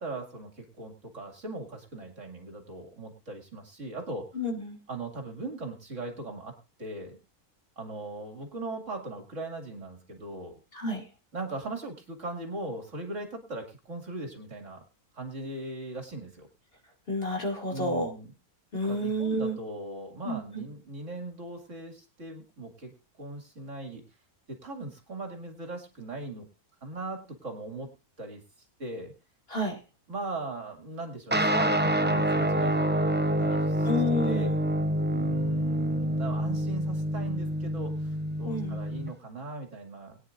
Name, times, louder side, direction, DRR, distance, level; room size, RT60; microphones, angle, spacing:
voice 1, 0.0-4.3 4.9-6.5 6.8-7.2 7.8-10.6 11.3-14.8 15.1-16.5 17.7-18.3 18.8-24.0 24.5-26.5 26.8-27.9 28.2-28.4 28.8-29.1 30.1-33.1 33.4-33.9 34.2-34.5 35.1-40.2, right 2 dB, 55° right, 3 dB, 2.7 m, -39 dB
voice 2, 4.3-4.8 10.7-11.1 17.1-18.1 18.7-19.6 20.2-20.6 29.5-29.8 33.8-34.6 38.4-38.8, left 1 dB, 40° left, 1 dB, 2.6 m, -30 dB
sound 1, 31.3-39.1, right 1 dB, 15° right, 0.4 m, -27 dB
22.0 x 9.7 x 2.5 m, 0.27 s
omnidirectional pair, 1.6 m